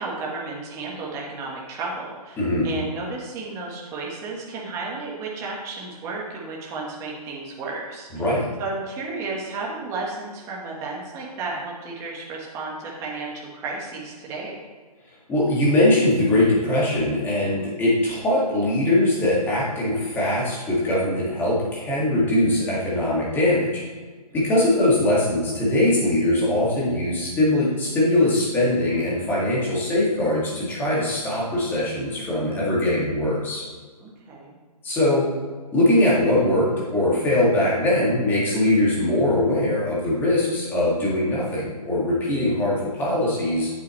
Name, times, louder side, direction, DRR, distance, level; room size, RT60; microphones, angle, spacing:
voice 1, 0.0-2.4 2.6-8.1 8.6-14.6 24.3-24.6 34.0-34.5, right 3 dB, 15° right, -3 dB, 1.3 m, -33 dB
voice 2, 2.4-2.7 8.1-8.5 15.3-23.8 24.3-33.6 34.8-35.3 35.7-43.7, left 1 dB, 10° left, -6 dB, 2.0 m, -21 dB
9.0 x 8.2 x 3.1 m, 1.5 s
hypercardioid pair, 155°, 20 cm